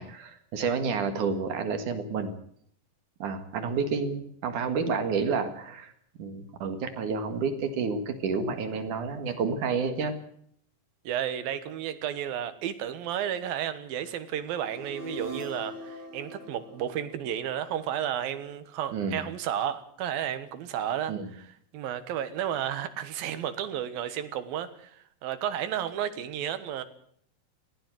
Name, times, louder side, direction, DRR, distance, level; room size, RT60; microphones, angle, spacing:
voice 1, 0.0-2.3 3.2-5.9 6.2-10.1 18.9-19.2 21.1-21.3, right 5 dB, 60° right, 3.2 m, -30 dB
voice 2, 11.0-26.8, right 10 dB, 85° right, 3.2 m, -32 dB
sound 1, 14.2-18.3, equal, 15° right, 2.3 m, -42 dB
21.0 x 16.0 x 7.8 m
omnidirectional pair, 4.1 m